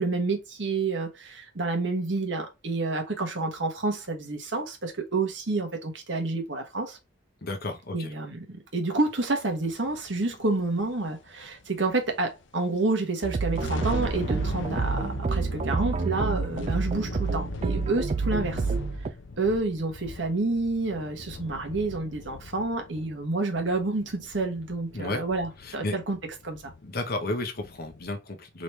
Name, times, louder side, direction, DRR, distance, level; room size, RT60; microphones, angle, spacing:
voice 1, 0.0-7.0 7.9-18.6 19.4-26.2 26.4-26.7, right 3 dB, 75° right, 1.4 m, -29 dB
voice 2, 7.4-8.1 24.9-25.2 25.6-26.0 26.8-28.6, left 2 dB, 55° left, 1.0 m, -32 dB
sound 1, 9.5-12.3 12.6-12.7 13.2-28.1, left 3 dB, 75° left, 0.6 m, -40 dB
sound 2, 13.2-19.1, right 4 dB, 35° right, 0.3 m, -29 dB
3.9 x 3.2 x 3.3 m
head